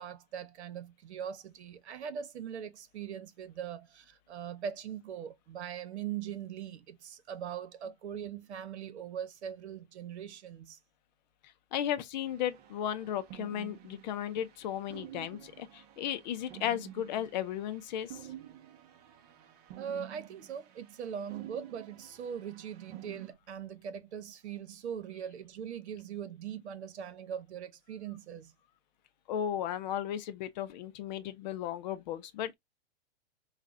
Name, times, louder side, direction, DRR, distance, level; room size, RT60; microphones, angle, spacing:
voice 1, 0.0-10.8 19.8-28.5, right 8 dB, 70° right, 1.1 m, -41 dB
voice 2, 11.7-18.3 29.3-32.5, left 10 dB, 40° left, 0.6 m, -35 dB
sound 1, 12.2-23.3, right 13 dB, 35° right, 0.9 m, -50 dB
5.4 x 2.4 x 2.6 m
hypercardioid pair, 145°, 34 cm